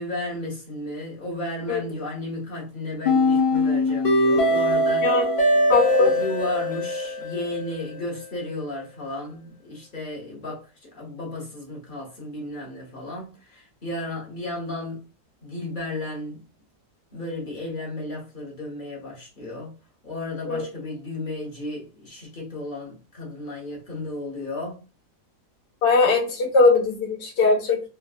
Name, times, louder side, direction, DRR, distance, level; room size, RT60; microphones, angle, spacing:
voice 1, 0.0-5.1 6.0-15.0 15.4-16.4 17.1-19.7 20.0-24.8, left 2 dB, 35° left, 1.0 m, -33 dB
sound 1, 3.0-8.1, left 1 dB, 65° left, 0.4 m, -22 dB
voice 2, 5.7-6.1 20.5-20.7 25.8-27.9, left 3 dB, 90° left, 1.5 m, -20 dB
3.5 x 2.3 x 2.4 m
omnidirectional pair, 1.8 m